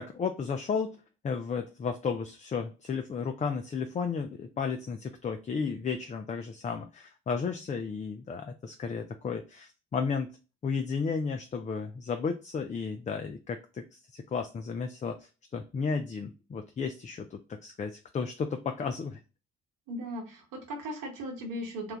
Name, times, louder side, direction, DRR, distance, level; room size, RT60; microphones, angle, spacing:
voice 1, 0.0-10.3 10.6-19.2, left 5 dB, 20° left, 6 dB, 0.4 m, -33 dB
voice 2, 19.9-22.0, equal, 65° right, 2 dB, 1.0 m, -37 dB
3.1 x 2.3 x 3.3 m, 0.32 s
figure-of-eight pair, 40°, 34 cm